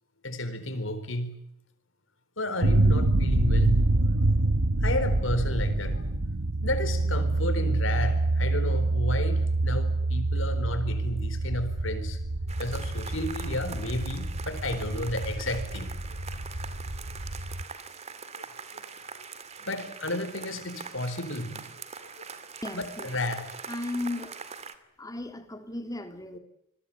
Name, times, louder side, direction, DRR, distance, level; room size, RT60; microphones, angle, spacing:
voice 1, 0.2-1.4 2.4-3.9 4.8-6.1 6.6-12.2 12.5-16.2 18.4-18.5 18.7-18.8 19.1-19.3 19.6-21.7 22.0-22.3 22.7-23.5, left 1 dB, 65° left, 10 dB, 4.2 m, -32 dB
sound 1, 2.6-17.6, right 2 dB, 85° right, 1.4 m, -26 dB
sound 2, 12.5-24.7, right 5 dB, 30° right, 2.3 m, -43 dB
voice 2, 22.6-23.0 23.7-24.3 25.0-26.4, left 2 dB, 15° left, 7 dB, 3.3 m, -35 dB
27.5 x 21.5 x 8.6 m, 0.80 s
head